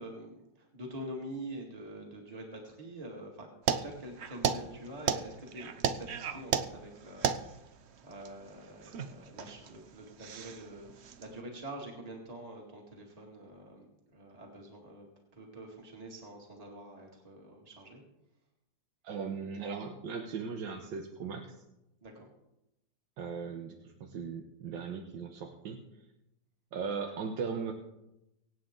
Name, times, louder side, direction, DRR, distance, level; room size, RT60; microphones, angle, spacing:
voice 1, 0.0-18.0 22.0-22.3, right 1 dB, 20° right, -1 dB, 2.3 m, -46 dB
sound 1, 3.7-11.4, right 7 dB, 60° right, 0.7 m, -35 dB
voice 2, 19.0-21.6 23.2-25.8 26.7-27.7, right 5 dB, 80° right, 4 dB, 1.8 m, -38 dB
24.5 x 8.6 x 3.8 m, 0.89 s
omnidirectional pair, 2.0 m